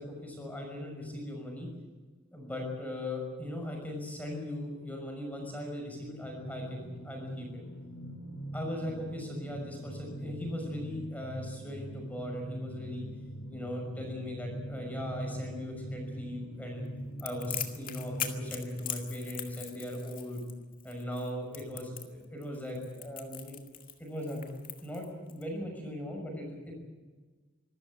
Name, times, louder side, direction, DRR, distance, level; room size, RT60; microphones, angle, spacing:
voice 1, 0.0-1.7 2.3-7.6 8.5-13.1 13.5-16.8 17.2-20.4 20.8-23.5 24.0-24.5 24.8-26.7, left 1 dB, 5° left, 1 dB, 5.8 m, -39 dB
sound 1, 6.2-18.6, right 1 dB, 70° left, 3.2 m, -43 dB
Crackle, 17.2-25.4, left 10 dB, 40° left, 2.1 m, -41 dB
25.5 x 13.5 x 9.0 m, 1.3 s
head